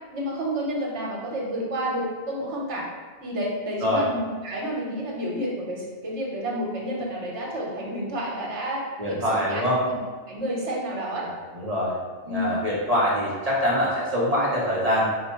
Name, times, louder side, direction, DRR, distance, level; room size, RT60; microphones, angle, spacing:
voice 1, 0.1-2.8 3.2-10.0 10.3-11.3 12.2-12.6, equal, 60° right, -3 dB, 1.2 m, -30 dB
voice 2, 9.0-9.8 11.6-11.9 12.3-15.1, equal, 40° right, -5 dB, 0.6 m, -24 dB
4.8 x 2.1 x 4.3 m, 1.5 s
omnidirectional pair, 1.4 m